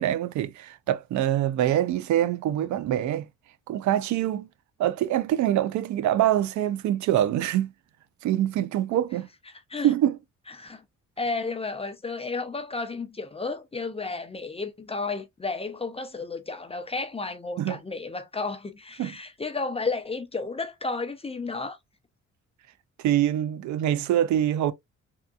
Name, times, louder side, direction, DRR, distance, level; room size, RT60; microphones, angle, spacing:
voice 1, 0.0-3.3 3.7-4.5 4.8-7.7 8.2-9.3 9.8-10.2 17.6-17.8 19.0-19.1 23.0-24.7, right 12 dB, 70° right, 0.5 m, -24 dB
voice 2, 11.2-21.8, left 3 dB, 20° left, 0.6 m, -32 dB
3.4 x 2.8 x 2.3 m
cardioid pair, 90°, 30 cm